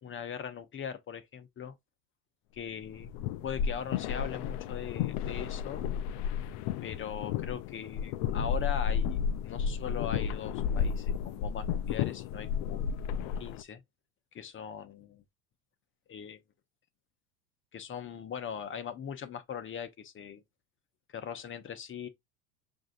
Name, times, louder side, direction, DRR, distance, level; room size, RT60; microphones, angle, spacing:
voice 1, 0.0-1.7 2.5-5.8 6.8-9.2 9.4-12.8 13.4-13.8 14.3-15.2 16.1-16.4 17.7-20.4 21.1-22.1, left 8 dB, 25° left, 0.9 m, -40 dB
sound 1, 2.8-13.6, left 7 dB, 45° left, 0.5 m, -32 dB
6.0 x 2.7 x 2.6 m
hypercardioid pair, 90°, 45 cm